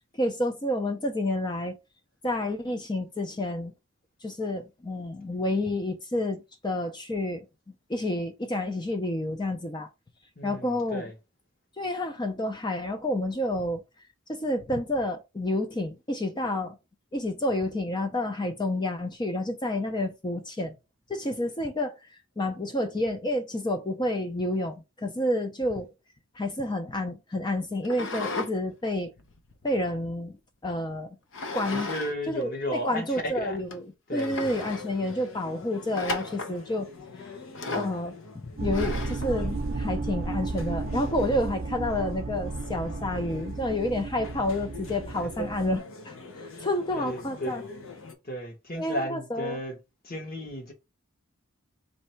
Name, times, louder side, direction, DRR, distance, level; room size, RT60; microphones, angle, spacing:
voice 1, 0.1-1.8 2.2-3.7 4.2-9.9 10.4-11.1 11.8-13.8 14.3-16.8 17.1-20.8 21.1-22.0 22.4-25.9 26.4-29.1 29.6-30.4 30.6-31.2 31.5-31.9 32.3-33.8 34.1-36.9 37.7-38.1 38.4-46.2 46.6-47.6 48.7-49.6, left 1 dB, 20° left, 0.5 m, -29 dB
voice 2, 10.4-11.1 31.7-33.6 34.1-34.5 37.6-37.9 45.4-45.5 46.3-46.5 46.9-47.7 48.2-49.8 50.0-50.7, equal, 45° left, 1.2 m, -34 dB
sound 1, 27.8-28.5 28.9-30.3 31.3-32.1 32.4-32.5 33.2-33.3 33.7-33.8 34.2-34.9 35.9-36.6 37.5-38.0 38.7-39.3, left 2 dB, 65° left, 0.7 m, -34 dB
pmu cafe, 34.3-48.1, left 4 dB, 85° left, 0.9 m, -45 dB
sound 2, 38.6-45.8, right 3 dB, 45° right, 0.6 m, -33 dB
3.2 x 2.7 x 4.4 m
head